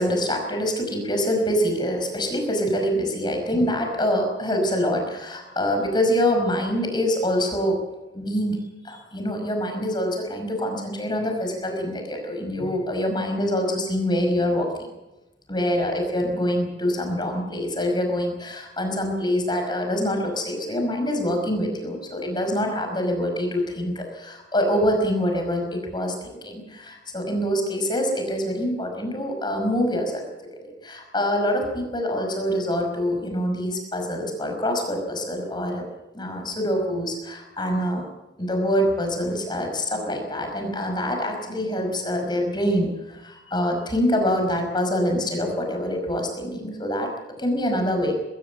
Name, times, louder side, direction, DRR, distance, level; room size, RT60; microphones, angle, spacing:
voice 1, 0.0-7.8 8.1-8.6 8.8-14.9 15.5-30.2 30.6-35.9 36.1-38.0 38.4-47.1 47.4-48.2, equal, 25° left, 3 dB, 5.5 m, -25 dB
22.5 x 15.0 x 8.1 m, 1.0 s
head